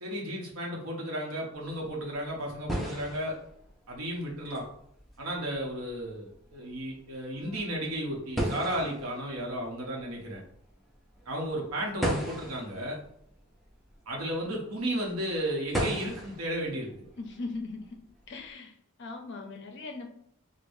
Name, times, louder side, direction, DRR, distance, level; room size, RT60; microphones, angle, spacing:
voice 1, 0.0-3.4 3.9-4.6 5.2-10.4 11.3-13.0 14.1-17.1, right 1 dB, 75° right, -2 dB, 0.8 m, -34 dB
sound 1, 1.5-18.5, right 1 dB, ahead, 0.4 m, -38 dB
voice 2, 17.2-18.0 18.3-20.1, left 3 dB, 50° left, 4 dB, 0.5 m, -39 dB
4.8 x 2.1 x 2.6 m, 0.68 s
head